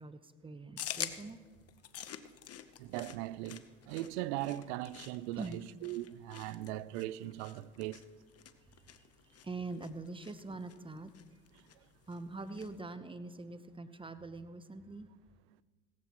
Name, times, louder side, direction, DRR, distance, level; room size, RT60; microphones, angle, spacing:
voice 1, 0.0-1.4 5.4-5.6 9.4-11.1 12.1-15.1, right 3 dB, 15° right, 0.9 m, -43 dB
sound 1, 0.8-12.8, left 10 dB, 45° left, 0.9 m, -48 dB
voice 2, 2.8-8.0, right 15 dB, 85° right, 0.5 m, -39 dB
17.0 x 15.0 x 3.0 m
supercardioid pair, 80°, 33 cm